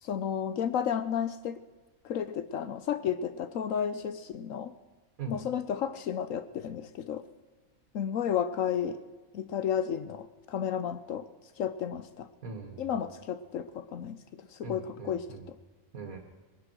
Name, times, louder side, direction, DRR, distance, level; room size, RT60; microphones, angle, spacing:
voice 1, 0.0-1.6 2.0-4.7 5.3-7.3 7.9-9.0 9.3-11.3 11.6-12.3 12.8-15.5, left 8 dB, 75° left, 12 dB, 1.1 m, -32 dB
voice 2, 12.4-13.0 14.6-15.4 15.9-16.2, right 4 dB, 80° right, 3 dB, 2.2 m, -41 dB
21.0 x 9.8 x 6.3 m, 1.3 s
omnidirectional pair, 1.4 m